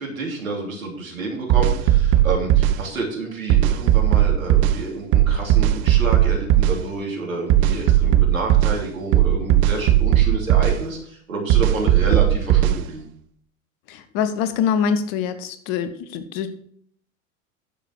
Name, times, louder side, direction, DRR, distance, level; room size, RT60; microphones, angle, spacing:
voice 1, 0.0-13.1, right 3 dB, 75° right, 0 dB, 3.0 m, -29 dB
sound 1, 1.5-2.8 3.5-4.8 5.1-6.8 7.5-8.8 9.1-10.8 11.5-12.8, right 12 dB, 35° right, 0.6 m, -16 dB
voice 2, 13.9-16.7, left 7 dB, 45° left, 11 dB, 1.0 m, -24 dB
10.0 x 6.9 x 4.7 m, 0.63 s
figure-of-eight pair, 80°, 42 cm